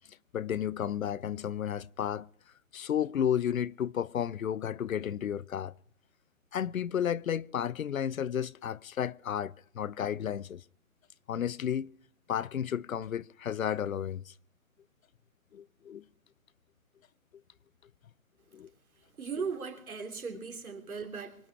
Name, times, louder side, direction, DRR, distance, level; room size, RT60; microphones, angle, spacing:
voice 1, 0.3-2.3 2.7-5.7 6.5-10.6 11.3-11.9 12.3-14.3 15.5-16.0 18.5-18.7 19.4-19.5, left 9 dB, 70° left, 0.7 m, -32 dB
voice 2, 19.2-21.4, right 5 dB, 85° right, 3.4 m, -37 dB
25.0 x 8.6 x 4.7 m
hypercardioid pair, 170°, 42 cm